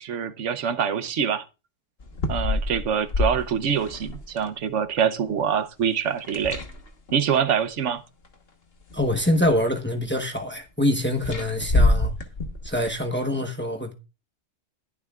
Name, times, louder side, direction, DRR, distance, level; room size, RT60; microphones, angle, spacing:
voice 1, 0.0-1.4 2.3-6.6 7.1-8.0, right 7 dB, 80° right, 1.1 m, -25 dB
sound 1, 2.0-4.5 6.2-7.1 8.2-8.3 8.8-9.7 11.2-12.9, left 2 dB, 55° left, 1.6 m, -26 dB
voice 2, 8.9-12.1 12.6-13.9, left 1 dB, 10° left, 1.0 m, -25 dB
21.0 x 7.3 x 2.4 m
omnidirectional pair, 1.2 m